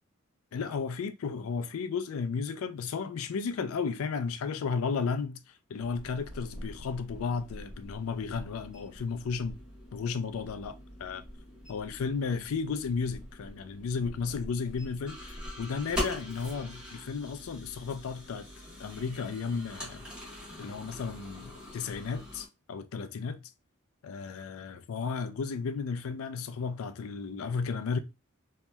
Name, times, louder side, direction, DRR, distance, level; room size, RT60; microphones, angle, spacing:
voice 1, 0.5-9.6 9.9-11.2 11.7-18.5 18.8-20.1 20.6-23.5 24.0-28.0, left 5 dB, 80° left, 0.4 m, -34 dB
sound 1, 5.8-22.5, left 1 dB, 5° right, 1.3 m, -43 dB
3.1 x 2.7 x 2.2 m
head